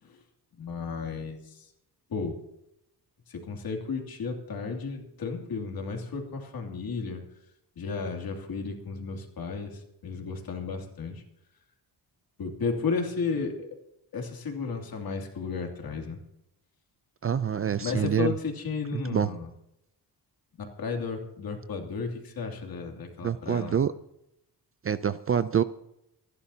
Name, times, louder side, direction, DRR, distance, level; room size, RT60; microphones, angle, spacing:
voice 1, 0.6-1.7 2.1-2.4 3.3-7.2 7.8-11.2 12.4-13.7 14.1-16.2 17.8-19.5 20.6-23.8, left 5 dB, 60° left, 2 dB, 2.7 m, -33 dB
voice 2, 17.2-18.3 18.9-19.3 23.2-23.9 24.8-25.6, right 8 dB, 35° right, 14 dB, 0.4 m, -26 dB
27.5 x 11.5 x 2.8 m, 0.81 s
wide cardioid pair, 155°, 40 cm